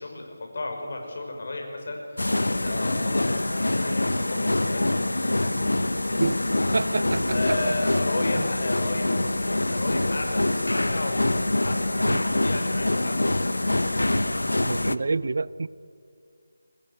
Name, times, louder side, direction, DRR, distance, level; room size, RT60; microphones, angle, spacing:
voice 1, 0.0-5.5 7.2-11.4 11.6-14.0, left 2 dB, 60° left, 5.5 m, -34 dB
sound 1, 2.2-15.0, left 1 dB, 85° left, 1.0 m, -25 dB
voice 2, 6.7-7.6 12.1-12.2 14.6-15.7, right 3 dB, 60° right, 0.6 m, -27 dB
22.0 x 20.5 x 8.2 m
figure-of-eight pair, 160°, 0 cm